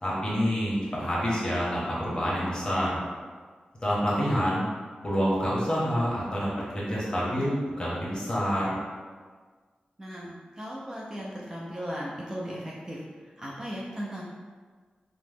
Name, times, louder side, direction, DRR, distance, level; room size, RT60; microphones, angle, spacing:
voice 1, 0.0-3.0 3.8-4.6 5.0-8.8, equal, 30° left, -6 dB, 0.9 m, -27 dB
voice 2, 4.1-4.5 10.0-13.0 13.4-14.2, equal, 20° right, -5 dB, 0.4 m, -37 dB
2.9 x 2.0 x 3.3 m, 1.5 s
wide cardioid pair, 125°, 3 cm